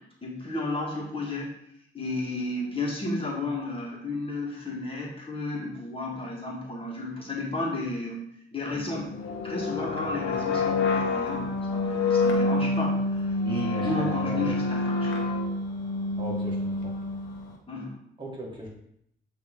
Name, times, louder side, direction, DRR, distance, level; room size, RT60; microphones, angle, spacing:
voice 1, 0.2-1.5 1.9-8.2 8.5-9.1 9.4-15.3 17.7-18.0, left 2 dB, 25° left, -3 dB, 1.7 m, -33 dB
sound 1, 8.7-17.5, left 3 dB, 75° left, 1.2 m, -27 dB
voice 2, 13.4-14.5 16.2-16.9 18.2-18.7, right 1 dB, 25° right, -3 dB, 1.7 m, -37 dB
8.2 x 3.1 x 3.7 m, 0.71 s
cardioid pair, 90°, 20 cm